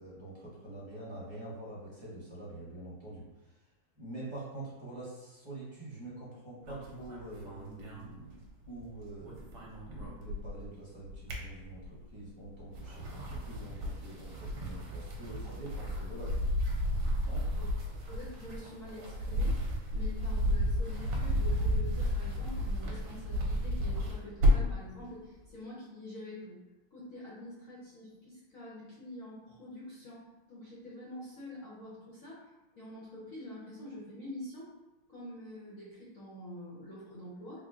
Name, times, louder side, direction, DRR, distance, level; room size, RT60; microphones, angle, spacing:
voice 1, 0.0-3.2 3.9-9.7 9.9-16.4 17.2-17.4, right 2 dB, 15° right, -8 dB, 1.0 m, -45 dB
sound 1, 6.6-8.8 9.1-10.7 11.0-12.1 12.6-24.8, equal, 65° right, 1.2 m, -32 dB
voice 2, 18.1-19.6 19.9-26.6 26.9-32.5 32.7-34.7 35.1-37.6, left 1 dB, 60° left, -7 dB, 0.9 m, -46 dB
3.6 x 2.2 x 3.7 m, 1.1 s
omnidirectional pair, 2.3 m